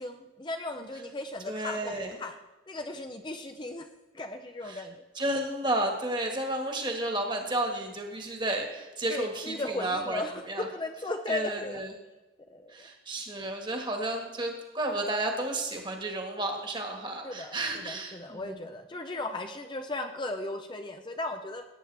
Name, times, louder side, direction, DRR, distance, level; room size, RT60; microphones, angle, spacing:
voice 1, 0.0-2.4 2.7-3.9 4.1-5.0 9.1-11.8 12.5-12.9 17.2-21.7, left 2 dB, 25° left, 5 dB, 0.5 m, -36 dB
voice 2, 1.5-2.2 4.6-4.8 5.1-10.7 11.3-11.9 12.7-18.6, right 1 dB, 25° right, 3 dB, 1.7 m, -32 dB
17.5 x 9.0 x 3.4 m, 1.1 s
head